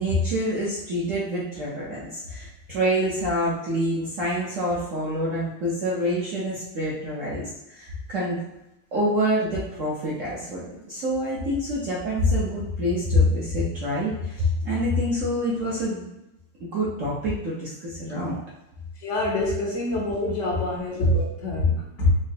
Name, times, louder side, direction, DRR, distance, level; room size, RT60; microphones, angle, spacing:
voice 1, 0.0-8.4 8.9-16.0 16.6-18.4 22.0-22.1, equal, 65° right, -6 dB, 0.8 m, -26 dB
voice 2, 19.0-22.1, left 1 dB, 70° left, -4 dB, 0.7 m, -26 dB
4.9 x 2.1 x 2.8 m, 0.91 s
omnidirectional pair, 2.3 m